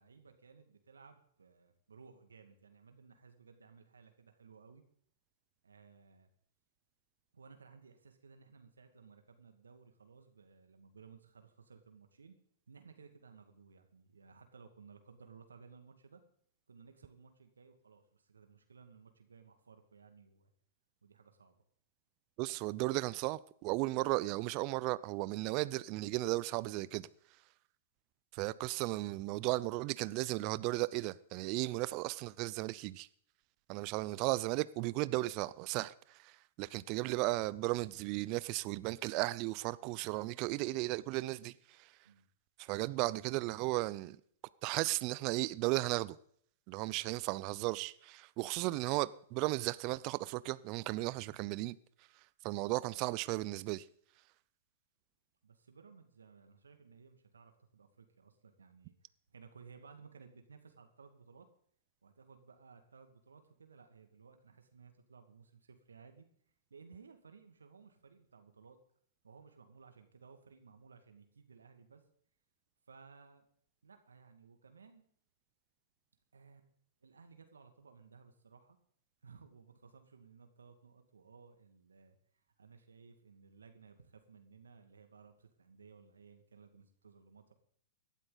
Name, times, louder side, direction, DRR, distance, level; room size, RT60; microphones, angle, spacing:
voice 1, 0.0-4.8 5.6-6.3 7.3-12.3 12.7-16.2 16.7-20.5 21.0-21.6 42.0-42.3 55.4-58.9 59.3-61.5 62.0-66.3 66.7-68.8 69.2-72.0 72.9-73.4 73.8-75.1 76.3-76.7 77.0-78.8 79.2-82.2 82.6-87.5, right 5 dB, 85° right, 1.9 m, -58 dB
voice 2, 22.4-27.1 28.3-33.1 33.7-41.9 42.6-44.2 44.6-46.2 46.7-51.8 52.4-53.9, right 20 dB, 45° right, 0.5 m, -35 dB
17.5 x 12.5 x 4.0 m
hypercardioid pair, 110°, 0 cm